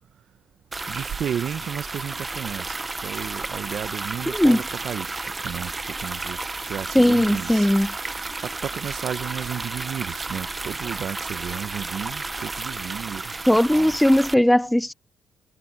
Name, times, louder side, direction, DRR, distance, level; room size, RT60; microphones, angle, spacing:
sound 1, 0.7-14.3, right 3 dB, 20° right, 0.8 m, -32 dB
voice 1, 0.9-5.7 6.0-7.7 8.4-13.4 13.7-14.0, right 9 dB, 65° right, 0.8 m, -33 dB
voice 2, 6.9-7.9 13.5-14.9, left 1 dB, 5° left, 0.5 m, -18 dB
cardioid pair, 90°, 0 cm